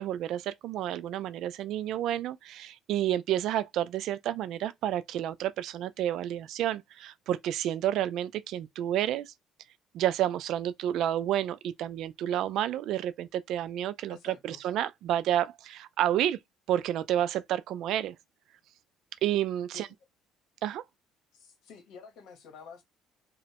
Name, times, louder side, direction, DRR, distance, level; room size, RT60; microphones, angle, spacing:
voice 1, 0.0-9.3 9.9-16.4 16.7-18.2 19.2-19.9 20.6-20.8, right 11 dB, 70° right, 0.3 m, -30 dB
voice 2, 14.1-14.6 19.7-19.9 21.3-22.8, left 5 dB, 75° left, 1.0 m, -49 dB
3.0 x 2.1 x 2.8 m
cardioid pair, 100°, 0 cm